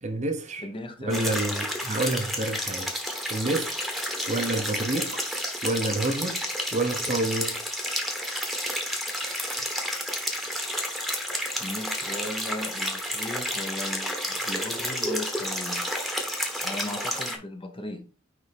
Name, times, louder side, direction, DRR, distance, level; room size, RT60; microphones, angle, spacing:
voice 1, 0.0-0.7 1.0-3.0 3.3-3.8 4.3-5.2 5.6-6.5 6.7-7.6, right 2 dB, 30° right, 0.8 m, -28 dB
voice 2, 0.6-1.4 11.6-16.2 16.6-18.2, left 1 dB, 25° left, 0.8 m, -37 dB
sound 1, 1.1-17.4, equal, ahead, 1.2 m, -31 dB
9.5 x 3.5 x 3.4 m
head